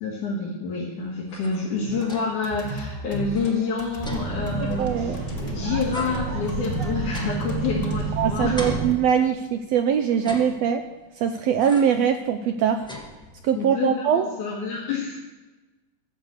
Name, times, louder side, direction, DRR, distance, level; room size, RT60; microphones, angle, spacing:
voice 1, 0.0-8.7 13.5-15.2, left 4 dB, 85° left, -4 dB, 3.2 m, -28 dB
sound 1, 1.1-2.5 2.9-3.0 3.2-5.5 5.9-8.1 8.6-9.6 10.1-11.0 11.6-12.1 12.5-13.6, equal, 5° left, 0.5 m, -40 dB
sound 2, 1.8-8.0, right 1 dB, 30° left, 1.5 m, -36 dB
sound 3, 4.0-8.9, right 4 dB, 55° right, 1.3 m, -29 dB
voice 2, 4.7-5.2 8.2-10.8 11.2-12.8 13.4-14.3, right 8 dB, 80° right, 7 dB, 1.5 m, -22 dB
13.5 x 6.5 x 7.9 m, 1.2 s
omnidirectional pair, 3.5 m